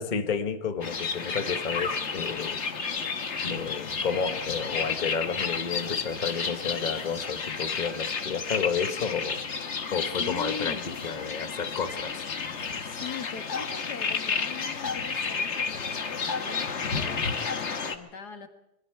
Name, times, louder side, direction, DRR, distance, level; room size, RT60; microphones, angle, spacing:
voice 1, 0.0-2.6 3.4-9.4 9.9-12.2, left 6 dB, 30° left, 8 dB, 1.2 m, -31 dB
sound 1, 0.8-18.0, left 5 dB, 45° left, 1.6 m, -31 dB
voice 2, 10.2-10.9 12.8-18.5, left 6 dB, 80° left, 6 dB, 2.4 m, -41 dB
25.5 x 22.0 x 4.7 m, 0.86 s
omnidirectional pair, 1.7 m